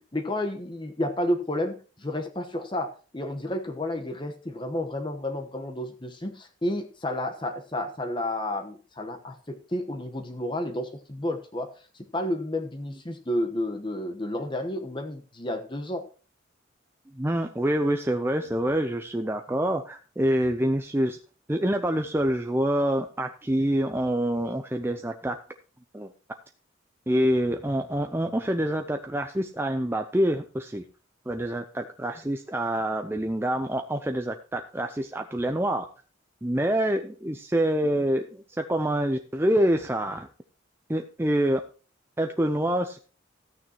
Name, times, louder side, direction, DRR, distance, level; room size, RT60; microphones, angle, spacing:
voice 1, 0.0-11.7 12.1-16.0, left 1 dB, 25° left, 4 dB, 1.1 m, -31 dB
voice 2, 17.2-21.2 21.5-25.4 25.9-26.1 27.1-30.8 31.3-35.9 36.4-40.3 40.9-41.6 42.2-43.0, right 1 dB, 10° right, 5 dB, 0.5 m, -26 dB
14.0 x 9.1 x 2.9 m, 0.37 s
head